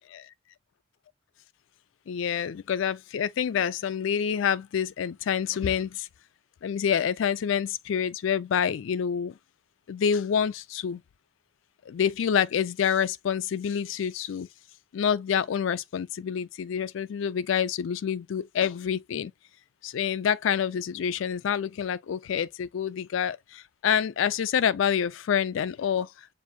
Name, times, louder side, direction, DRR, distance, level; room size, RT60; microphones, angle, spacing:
voice 1, 2.1-6.1 6.6-9.4 9.9-11.0 11.9-14.5 14.9-19.3 19.8-26.3, left 8 dB, 70° left, 0.3 m, -27 dB
7.2 x 2.6 x 2.2 m
head